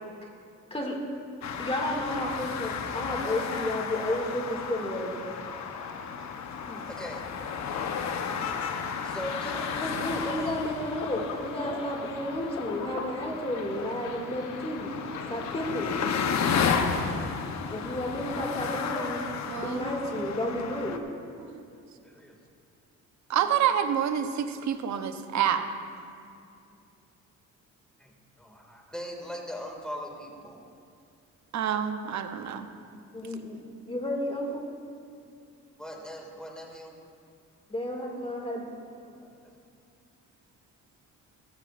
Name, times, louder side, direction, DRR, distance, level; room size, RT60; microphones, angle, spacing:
sound 1, 1.4-21.0, left 6 dB, 65° left, 0.9 m, -33 dB
voice 1, 1.6-5.2 6.6-6.9 9.4-15.0 15.3-16.0 17.7-19.2 19.6-21.0 33.1-33.6 33.9-34.7 37.7-38.6, left 1 dB, 20° left, 0 dB, 2.1 m, -32 dB
voice 2, 6.9-7.3 9.0-9.7 22.0-22.3 23.3-23.4 28.0-30.7 33.0-33.2 35.8-37.0 39.0-39.5, equal, 5° left, 0 dB, 2.1 m, -41 dB
sound 2, 9.2-17.0, left 5 dB, 85° left, 1.2 m, -43 dB
voice 3, 19.5-19.9 21.4-21.6 23.3-25.6 31.5-32.7, right 9 dB, 70° right, 8 dB, 0.9 m, -28 dB
15.0 x 14.5 x 2.5 m, 2.5 s
cardioid pair, 90°, 30 cm